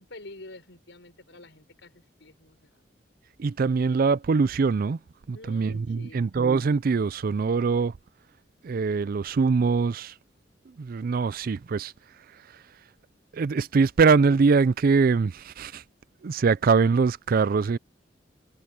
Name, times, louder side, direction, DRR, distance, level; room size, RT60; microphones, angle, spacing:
voice 1, 0.0-2.7 5.3-6.3, left 2 dB, 80° left, 5.2 m, -47 dB
voice 2, 3.4-5.0 5.3-7.9 8.6-10.1 10.8-11.9 13.3-15.8 16.2-17.8, right 4 dB, 50° right, 0.4 m, -23 dB
head